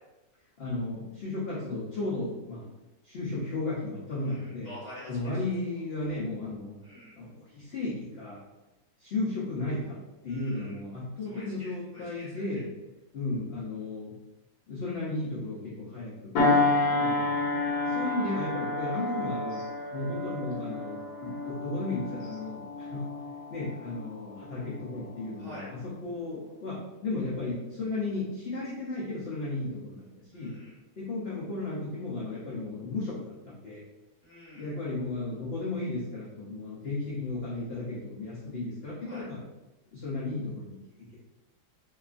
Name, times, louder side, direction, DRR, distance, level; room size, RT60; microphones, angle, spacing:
voice 1, 0.6-2.7 3.0-4.7 5.1-6.8 7.2-8.4 9.0-12.7 13.1-14.1 14.7-17.3 17.8-19.6 19.9-23.1 23.5-30.5 31.0-33.8 34.5-39.4 39.9-41.1, left 2 dB, 85° left, -7 dB, 0.5 m, -34 dB
voice 2, 4.2-5.3 6.8-7.1 10.3-10.8 11.2-12.3 25.4-25.7 30.3-30.7 34.2-34.7 39.0-39.2, equal, 30° right, -10 dB, 1.0 m, -47 dB
sound 1, 16.4-25.2 25.7-25.9, left 2 dB, 70° left, 1.1 m, -30 dB
2.8 x 2.4 x 2.4 m, 1.0 s
omnidirectional pair, 1.8 m